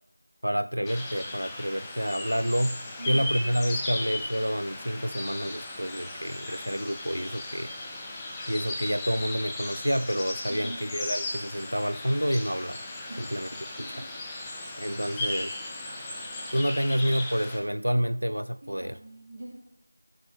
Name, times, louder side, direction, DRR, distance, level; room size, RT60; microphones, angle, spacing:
voice 1, 0.4-2.8 3.1-7.7 8.5-12.8 13.2-13.5 13.8-14.0 14.8-15.5 16.5-19.0, equal, 90° right, 0.3 m, -28 dB
sound 1, 0.8-17.6, left 2 dB, 5° left, 0.5 m, -36 dB
voice 2, 3.0-4.4 10.5-11.0 13.1-13.3 13.8-14.1 14.4-15.3 18.6-19.5, right 1 dB, 30° right, 2.5 m, -44 dB
14.5 x 5.6 x 2.7 m
figure-of-eight pair, 175°, 0 cm